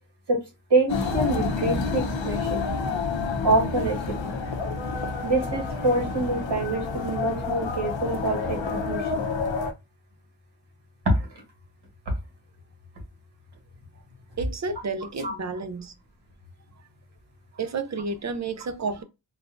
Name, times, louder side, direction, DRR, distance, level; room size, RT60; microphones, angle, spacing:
voice 1, 0.7-2.7 3.4-4.3 5.2-9.3 11.0-11.4 15.2-15.3, right 2 dB, 65° right, 1.5 m, -26 dB
sound 1, 0.9-9.7, left 4 dB, 80° left, 0.8 m, -29 dB
voice 2, 14.4-15.9 17.5-19.0, right 4 dB, 40° right, 0.5 m, -31 dB
4.0 x 2.3 x 2.5 m
wide cardioid pair, 100°, 45 cm